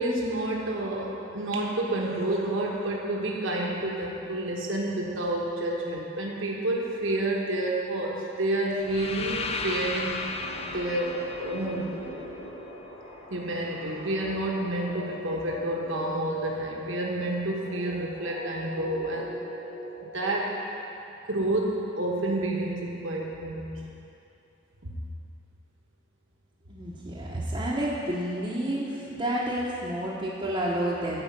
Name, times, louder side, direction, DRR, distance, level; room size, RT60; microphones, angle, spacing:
voice 1, 0.0-10.3 10.7-11.9 13.3-19.3 20.0-20.5 21.3-23.8, right 1 dB, 65° right, -2 dB, 1.2 m, -29 dB
sound 1, 2.0-3.9 6.9-7.0 7.2-20.9, left 1 dB, 55° left, 2.2 m, -42 dB
sound 2, 8.8-12.8, left 3 dB, 30° left, 0.5 m, -35 dB
voice 2, 26.7-31.2, right 1 dB, 25° right, -7 dB, 0.9 m, -30 dB
11.0 x 4.9 x 7.3 m, 2.9 s
head